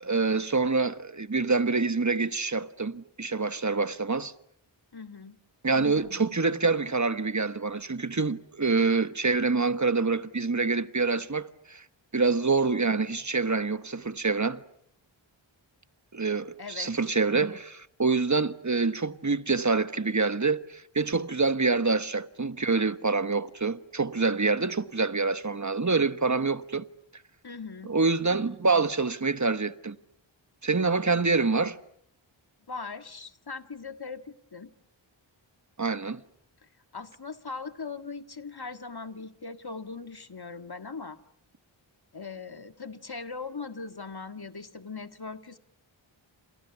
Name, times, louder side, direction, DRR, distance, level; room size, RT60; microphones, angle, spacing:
voice 1, 0.0-4.3 5.6-11.8 12.1-14.6 16.1-26.8 27.8-30.0 30.6-31.8 35.8-36.2, right 4 dB, 35° right, 1.3 m, -26 dB
voice 2, 4.9-5.4 16.6-16.9 27.4-28.0 32.7-34.7 36.9-41.2 42.1-45.6, left 4 dB, 50° left, 1.8 m, -40 dB
29.0 x 27.5 x 7.1 m
wide cardioid pair, 40°, 48 cm